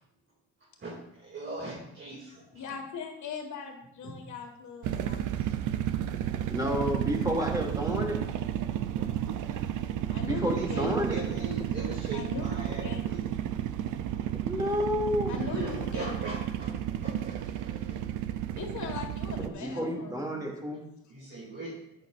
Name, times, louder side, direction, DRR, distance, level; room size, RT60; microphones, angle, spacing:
voice 1, 0.8-2.8 4.0-4.2 7.8-8.1 8.9-9.2 10.5-13.2 15.4-18.0 18.9-19.0 21.1-21.7, right 2 dB, 40° right, -4 dB, 2.5 m, -40 dB
voice 2, 2.5-5.3 10.1-10.9 12.1-13.0 15.3-16.2 18.6-20.4, left 6 dB, 70° left, 3 dB, 1.8 m, -39 dB
sound 1, 4.8-19.5, right 11 dB, 80° right, 0.6 m, -32 dB
voice 3, 6.5-8.2 10.2-11.2 14.5-15.4 19.5-20.8, equal, 10° right, -1 dB, 2.5 m, -30 dB
12.0 x 8.6 x 2.5 m, 0.79 s
cardioid pair, 90°, 30 cm